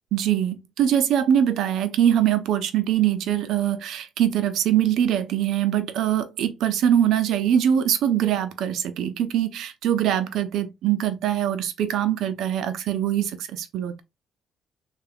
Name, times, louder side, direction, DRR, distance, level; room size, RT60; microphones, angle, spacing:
voice 1, 0.1-14.0, right 10 dB, 80° right, 0.6 m, -23 dB
3.3 x 2.4 x 3.4 m
cardioid pair, 80°, 0 cm